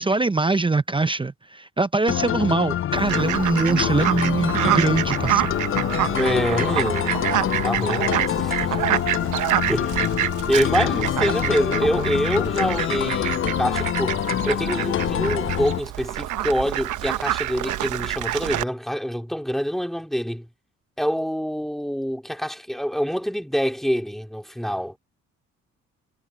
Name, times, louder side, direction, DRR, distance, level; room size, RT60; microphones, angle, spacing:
voice 1, 0.0-5.5, right 3 dB, 15° right, 0.7 m, -23 dB
sound 1, 2.1-15.8, left 11 dB, 45° left, 0.4 m, -25 dB
Fowl, 2.9-18.6, right 14 dB, 80° right, 1.0 m, -27 dB
voice 2, 6.1-7.2 7.6-8.8 9.7-10.0 10.5-20.5 21.0-24.9, equal, ahead, 3.7 m, -26 dB
cardioid pair, 90°, 30 cm